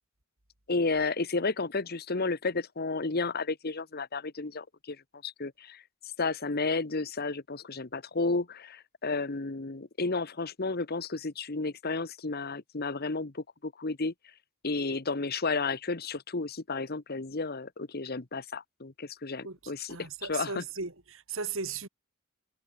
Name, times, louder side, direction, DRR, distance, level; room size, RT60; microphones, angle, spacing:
voice 1, 0.7-14.1 14.6-20.6, left 3 dB, 45° left, 1.2 m, -32 dB
voice 2, 19.9-21.9, right 5 dB, 65° right, 3.3 m, -36 dB
head